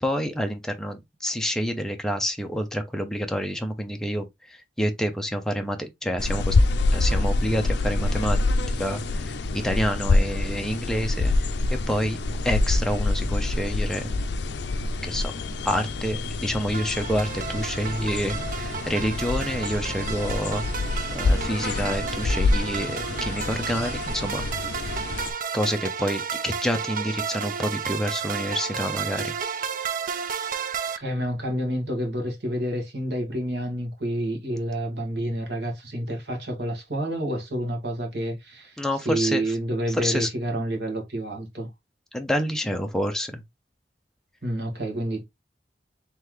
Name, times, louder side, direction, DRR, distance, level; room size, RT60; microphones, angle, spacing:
voice 1, 0.0-6.6 6.9-8.4 8.7-11.5 11.9-12.2 12.4-14.1 15.0-15.3 15.6-20.6 21.1-24.5 25.5-29.4 38.8-39.6 39.9-40.3 42.1-43.4, equal, 5° left, 0.7 m, -28 dB
sound 1, 6.2-25.3, left 2 dB, 70° left, 0.5 m, -26 dB
sound 2, 16.7-31.0, right 6 dB, 50° right, 0.4 m, -32 dB
voice 2, 31.0-41.7 44.4-45.2, right 1 dB, 65° right, 1.7 m, -29 dB
3.8 x 3.3 x 3.1 m
head